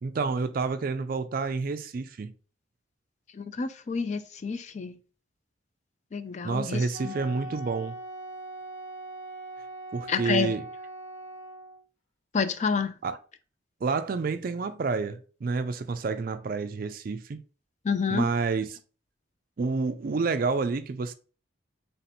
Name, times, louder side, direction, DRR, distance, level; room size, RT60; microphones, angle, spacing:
voice 1, 0.0-2.3 6.4-8.0 9.9-10.6 13.0-13.2 13.8-17.4 18.1-18.8 19.6-21.1, right 4 dB, 45° right, 0.3 m, -29 dB
voice 2, 3.3-5.0 6.1-7.1 10.1-10.5 12.3-12.9 17.8-18.3, left 5 dB, 35° left, 0.3 m, -29 dB
Wind instrument woodwind instrument, 6.9-11.8, right 2 dB, 75° left, 1.0 m, -41 dB
3.5 x 2.8 x 4.1 m
head